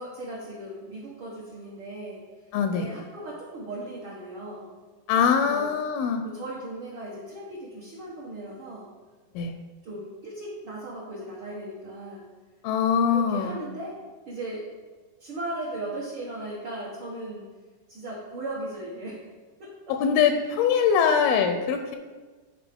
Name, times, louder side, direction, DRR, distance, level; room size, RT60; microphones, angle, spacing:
voice 1, 0.0-2.2 2.7-4.7 5.4-5.7 6.2-8.9 9.8-12.3 13.1-14.0 14.3-14.7 15.2-17.5 17.9-19.2 19.6-19.9, right 1 dB, 65° right, -5 dB, 1.3 m, -37 dB
voice 2, 2.5-2.9 5.1-6.2 9.4-9.5 12.6-13.6 19.9-22.0, left 7 dB, 85° left, 7 dB, 2.4 m, -23 dB
12.0 x 4.7 x 3.6 m, 1.3 s
omnidirectional pair, 4.2 m